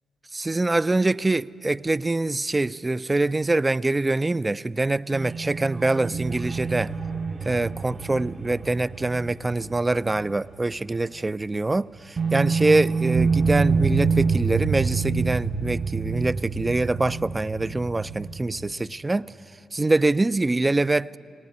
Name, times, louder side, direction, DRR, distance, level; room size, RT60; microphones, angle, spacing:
voice 1, 0.3-6.9 7.4-19.3 19.7-21.1, right 2 dB, 25° right, 0.5 m, -24 dB
sound 1, 5.1-10.6 10.8-11.0 12.2-18.7, right 5 dB, 40° right, 1.0 m, -27 dB
19.5 x 18.5 x 9.5 m
hypercardioid pair, 40°, 0 cm